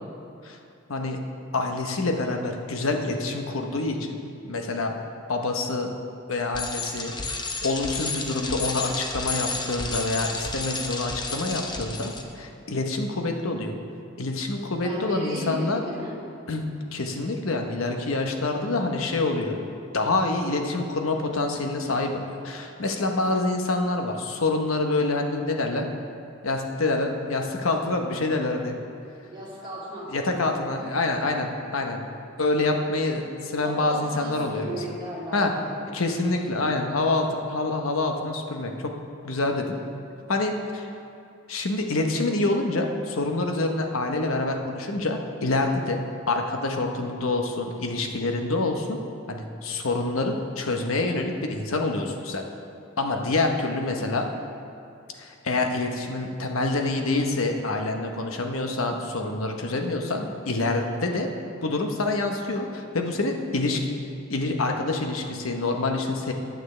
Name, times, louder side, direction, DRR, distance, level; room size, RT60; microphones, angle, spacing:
voice 1, 1.5-4.2 4.4-5.0 5.3-5.9 6.3-13.7 14.2-15.8 16.5-16.6 16.9-19.6 19.9-25.8 26.4-28.7 30.1-32.0 32.4-34.8 35.3-35.5 35.9-38.9 39.2-39.8 40.3-40.9 41.5-49.0 49.3-52.4 53.0-54.3 55.2-61.3 61.6-63.8 64.3-66.3, left 2 dB, 85° left, 3 dB, 1.0 m, -26 dB
Bicycle, 6.5-12.2, left 3 dB, 20° left, 0.7 m, -32 dB
voice 2, 14.8-16.2 29.3-30.3 30.6-30.9 33.6-36.5, right 1 dB, 25° right, -6 dB, 2.4 m, -36 dB
14.5 x 9.2 x 3.3 m, 2.5 s
head